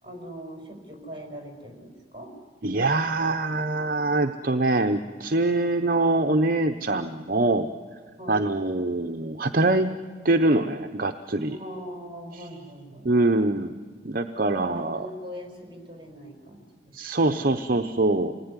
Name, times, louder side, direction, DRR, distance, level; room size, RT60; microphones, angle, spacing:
voice 1, 0.0-2.3 8.2-8.5 11.5-13.1 14.5-16.7, equal, 30° right, 3 dB, 5.4 m, -41 dB
voice 2, 2.6-7.7 8.3-11.6 13.0-13.8 14.0-15.1 16.9-18.3, right 2 dB, 50° right, 7 dB, 0.9 m, -24 dB
27.0 x 19.0 x 9.8 m, 1.5 s
head